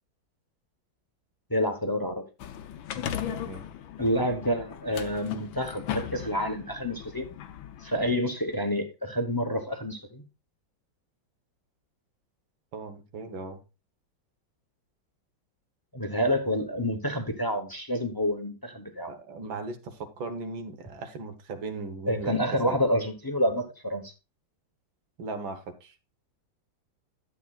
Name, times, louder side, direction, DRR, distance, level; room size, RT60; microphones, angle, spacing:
voice 1, 1.5-2.2 4.0-7.3 7.8-10.2 15.9-19.1 22.1-24.1, equal, 20° left, 6 dB, 0.6 m, -28 dB
sound 1, 2.4-8.0, left 9 dB, 90° left, 1.6 m, -37 dB
voice 2, 3.3-3.7 12.7-13.6 19.1-22.4 22.7-22.8 25.2-25.9, right 3 dB, 85° right, 7 dB, 2.0 m, -37 dB
11.5 x 8.1 x 2.4 m, 0.29 s
omnidirectional pair, 2.1 m